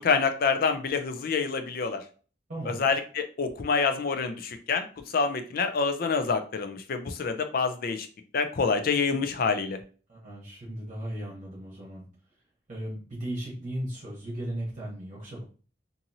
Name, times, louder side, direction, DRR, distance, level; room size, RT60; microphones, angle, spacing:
voice 1, 0.0-2.0 2.7-4.9 5.1-8.1 8.3-9.8, left 5 dB, 55° left, 8 dB, 0.4 m, -27 dB
voice 2, 2.5-2.8 10.1-12.0 12.7-15.4, right 1 dB, 45° right, -5 dB, 1.0 m, -36 dB
2.9 x 2.6 x 2.6 m, 0.38 s
head